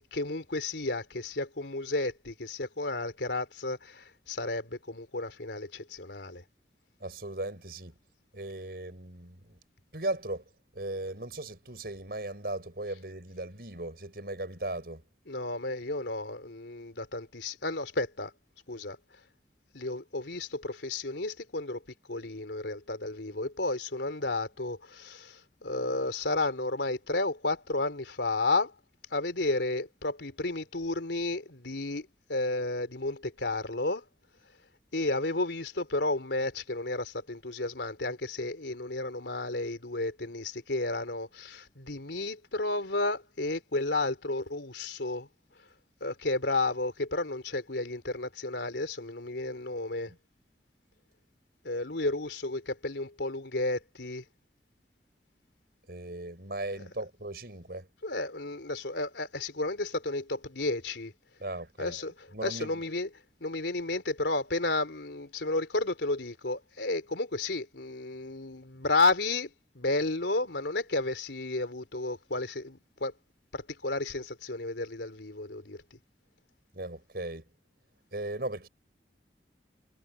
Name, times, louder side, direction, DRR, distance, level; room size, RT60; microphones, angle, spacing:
voice 1, 0.1-6.4 15.3-18.3 18.7-19.0 19.7-21.8 22.1-28.7 29.1-34.0 34.9-45.3 46.0-50.1 51.6-54.2 58.0-61.1 61.8-62.1 62.4-63.1 63.4-69.5 69.8-73.1 73.5-75.8, left 2 dB, 85° left, 3.5 m, -32 dB
voice 2, 7.0-8.0 8.3-9.6 9.9-10.4 10.8-15.0 50.1-50.2 55.9-57.9 61.4-62.0 62.3-62.8 76.7-77.4 78.1-78.7, right 2 dB, 60° right, 5.7 m, -37 dB
head